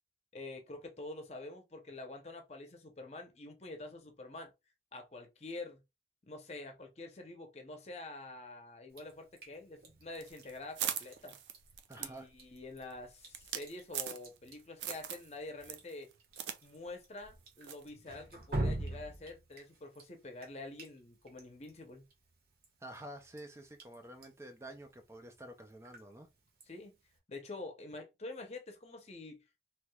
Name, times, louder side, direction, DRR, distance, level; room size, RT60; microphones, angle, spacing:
voice 1, 0.3-4.5 4.9-5.8 6.2-11.4 12.0-16.1 16.6-22.1 26.7-27.0 27.3-29.4, left 2 dB, 35° left, 0.7 m, -47 dB
Drip, 8.9-27.2, right 1 dB, 55° right, 1.0 m, -47 dB
sound 1, 10.2-14.5 14.8-15.3 15.6-16.6 16.9-17.0 17.6-17.9, right 9 dB, 90° right, 0.4 m, -40 dB
voice 2, 11.9-12.3 22.8-26.3, right 1 dB, 15° right, 0.3 m, -49 dB
3.2 x 3.0 x 2.2 m
head